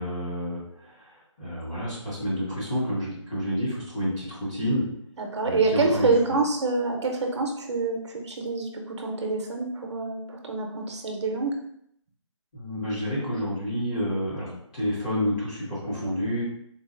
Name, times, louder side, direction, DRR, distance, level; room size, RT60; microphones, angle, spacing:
voice 1, 0.0-4.9 5.4-6.1 12.5-16.4, equal, 15° left, -9 dB, 0.6 m, -29 dB
voice 2, 5.2-8.7 9.0-11.5, right 3 dB, 60° right, 2 dB, 0.7 m, -26 dB
3.8 x 2.4 x 2.4 m, 0.71 s
hypercardioid pair, 165°, 16 cm